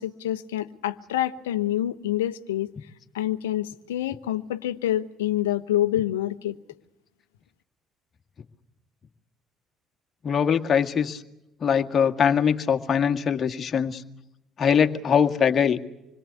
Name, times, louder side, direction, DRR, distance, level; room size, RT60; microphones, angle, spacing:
voice 1, 0.0-2.7 3.1-6.6, left 13 dB, 85° left, 0.9 m, -27 dB
voice 2, 10.2-11.2 11.6-14.0 14.6-15.8, left 7 dB, 45° left, 1.9 m, -22 dB
27.0 x 21.5 x 8.2 m
hypercardioid pair, 55°, 0 cm